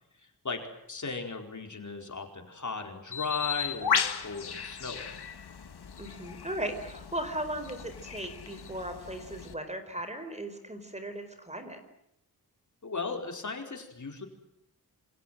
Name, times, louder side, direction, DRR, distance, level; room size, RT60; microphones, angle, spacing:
voice 1, 0.2-5.0 12.8-14.2, left 4 dB, 50° left, 4 dB, 4.7 m, -37 dB
Bird, 3.1-9.5, left 7 dB, 85° left, 2.0 m, -35 dB
voice 2, 6.0-11.8, right 1 dB, 15° right, 8 dB, 4.4 m, -37 dB
28.0 x 26.5 x 7.8 m, 0.80 s
wide cardioid pair, 120°, 38 cm